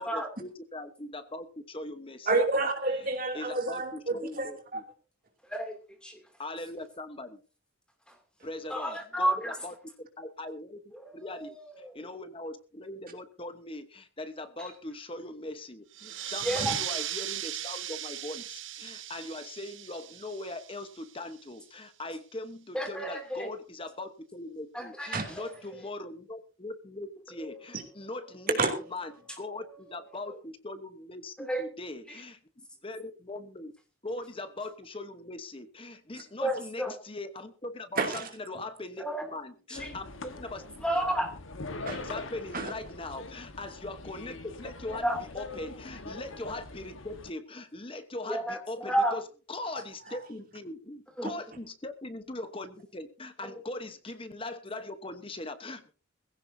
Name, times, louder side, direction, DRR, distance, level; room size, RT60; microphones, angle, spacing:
voice 1, 0.0-2.3 3.3-4.8 6.4-7.4 8.4-9.7 10.2-10.8 11.1-11.6 11.9-28.6 28.9-29.1 29.4-32.4 32.8-33.7 34.0-40.7 41.8-45.1 45.3-49.2 49.5-55.9, left 2 dB, 25° left, 10 dB, 1.1 m, -40 dB
voice 2, 2.3-4.8 16.7-16.8 25.1-25.4 27.7-27.8 28.6-28.7 38.0-38.3 41.8-42.0 42.5-42.7 44.9-45.0 50.1-50.2, right 3 dB, 45° right, 3 dB, 2.8 m, -29 dB
voice 3, 5.5-6.2 8.7-9.5 10.9-11.9 14.6-14.7 16.4-16.8 22.7-23.5 24.7-25.5 27.4-27.6 28.0-28.3 29.5-30.2 31.4-31.6 32.1-32.2 36.4-36.9 39.0-39.4 39.7-40.0 40.8-41.3 45.0-45.2 48.3-49.2 51.2-51.3 53.4-53.6, right 1 dB, 5° left, 3 dB, 2.7 m, -32 dB
sound 1, 15.9-21.1, right 12 dB, 70° right, 1.3 m, -37 dB
sound 2, 39.8-47.3, left 3 dB, 75° left, 1.4 m, -43 dB
18.5 x 16.0 x 2.7 m, 0.35 s
head